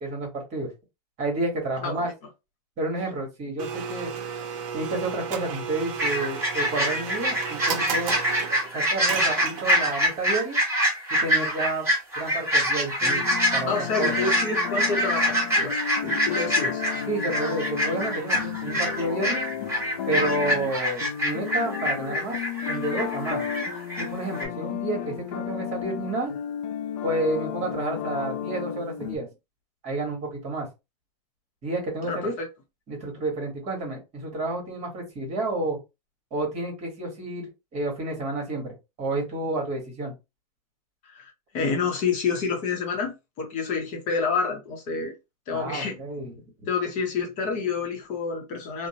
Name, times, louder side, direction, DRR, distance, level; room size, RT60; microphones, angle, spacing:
voice 1, 0.0-0.7 1.2-2.1 2.8-4.1 4.7-8.2 8.7-10.6 11.2-11.9 12.2-14.1 16.7-16.8 17.1-19.4 20.1-22.4 22.7-23.4 24.0-26.3 27.0-29.3 29.8-30.7 31.6-32.3 32.9-35.8 36.3-40.1 45.5-46.3, right 2 dB, 30° right, 1.3 m, -30 dB
Domestic sounds home sounds, 3.6-10.1, right 7 dB, 55° right, 0.6 m, -34 dB
sound 1, 6.0-24.1 24.3-24.4, equal, 10° right, 1.3 m, -25 dB
sound 2, 13.0-29.2, left 9 dB, 75° left, 0.6 m, -33 dB
voice 2, 13.7-15.8 16.0-16.8 32.1-32.5 41.0-45.1 45.5-46.0 46.7-48.9, left 5 dB, 35° left, 0.7 m, -28 dB
2.5 x 2.0 x 2.8 m
supercardioid pair, 140°, 21 cm